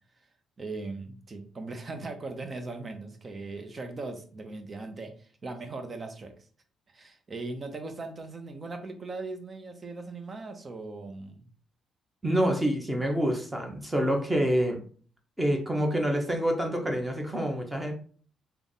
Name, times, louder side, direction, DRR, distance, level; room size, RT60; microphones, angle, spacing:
voice 1, 0.6-6.3 6.9-11.5, right 3 dB, 35° right, 6 dB, 0.8 m, -39 dB
voice 2, 12.2-14.8 15.4-17.9, equal, 10° right, 2 dB, 1.1 m, -27 dB
3.4 x 2.3 x 4.0 m, 0.43 s
cardioid pair, 90°, 0 cm